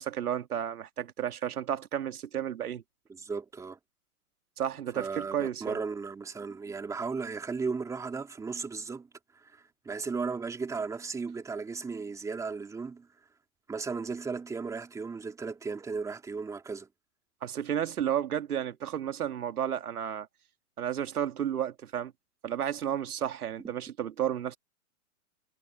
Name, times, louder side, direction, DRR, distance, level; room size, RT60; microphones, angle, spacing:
voice 1, 0.0-2.8 4.6-5.8 17.4-20.3 20.8-22.1 22.4-24.6, right 10 dB, 75° right, 2.4 m, -32 dB
voice 2, 3.1-3.8 4.9-9.1 9.3-13.1 13.7-16.9, right 4 dB, 5° right, 2.7 m, -35 dB
hypercardioid pair, 150°, 45 cm